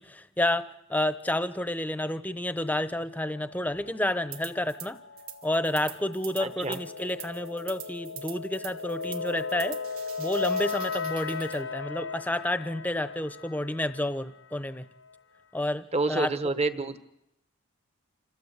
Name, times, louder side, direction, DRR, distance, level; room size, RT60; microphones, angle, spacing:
voice 1, 0.0-5.0 5.4-9.8 10.2-14.8 15.5-16.3, left 1 dB, 10° left, 12 dB, 0.9 m, -30 dB
sound 1, 3.1-14.4, left 5 dB, 75° left, 1.1 m, -37 dB
sound 2, 4.3-4.9 5.2-11.6, right 10 dB, 85° right, 2.1 m, -44 dB
voice 2, 6.4-6.8 15.9-17.0, right 3 dB, 30° right, 10 dB, 1.2 m, -28 dB
27.5 x 15.5 x 8.3 m, 0.82 s
head